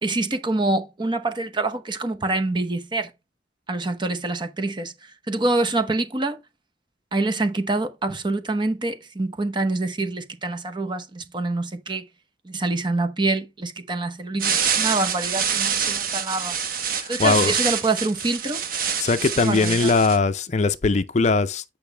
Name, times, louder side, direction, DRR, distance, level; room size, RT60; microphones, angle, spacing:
voice 1, 0.0-3.1 3.7-4.9 5.3-6.4 7.1-12.0 12.4-16.6 17.1-18.6 19.2-19.9, right 2 dB, 25° right, 0.9 m, -26 dB
sound 1, 14.4-20.2, right 7 dB, 50° right, 1.2 m, -26 dB
voice 2, 17.0-17.5 19.0-21.6, left 4 dB, 40° left, 0.5 m, -20 dB
8.7 x 5.5 x 3.3 m
head